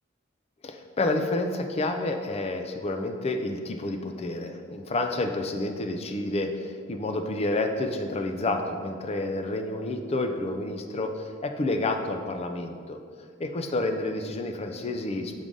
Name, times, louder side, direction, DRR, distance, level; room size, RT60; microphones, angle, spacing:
voice 1, 0.6-13.0 13.4-15.4, left 2 dB, 30° left, 6 dB, 0.4 m, -29 dB
6.2 x 3.7 x 5.1 m, 2.1 s
head